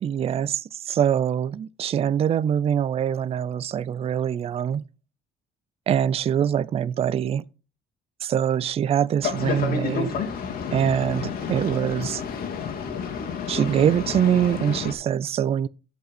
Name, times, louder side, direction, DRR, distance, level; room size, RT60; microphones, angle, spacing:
voice 1, 0.0-4.8 5.9-7.4 8.2-10.2 10.7-12.2 13.5-15.7, right 9 dB, 35° right, 0.4 m, -24 dB
Boat Water vehicle, 9.2-14.9, left 6 dB, 60° left, 2.1 m, -30 dB
13.0 x 5.4 x 4.2 m
cardioid pair, 110°, 17 cm